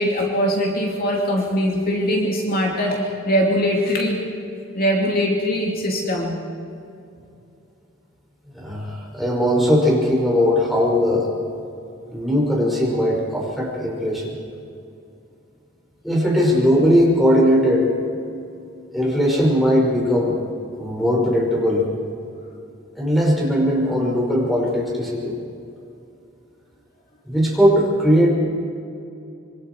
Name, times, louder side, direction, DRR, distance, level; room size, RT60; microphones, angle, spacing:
voice 1, 0.0-4.2 4.7-6.4, equal, 45° left, -1 dB, 2.6 m, -21 dB
voice 2, 8.5-11.3 12.1-14.4 16.0-17.9 18.9-20.4 20.7-21.9 23.0-25.4 27.3-28.3, equal, ahead, -3 dB, 5.5 m, -19 dB
26.0 x 24.5 x 4.6 m, 2.6 s
head